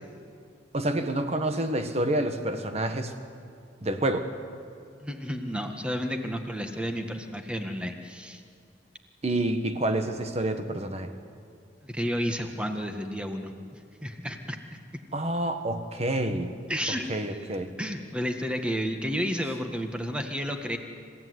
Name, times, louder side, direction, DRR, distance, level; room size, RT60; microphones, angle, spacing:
voice 1, 0.7-3.1 3.8-4.3 9.2-11.1 15.1-16.5 17.1-17.7, right 1 dB, 35° right, 7 dB, 1.6 m, -28 dB
voice 2, 5.0-8.4 11.8-14.6 16.7-20.8, equal, 5° right, 5 dB, 1.7 m, -32 dB
27.5 x 16.0 x 9.6 m, 2.3 s
head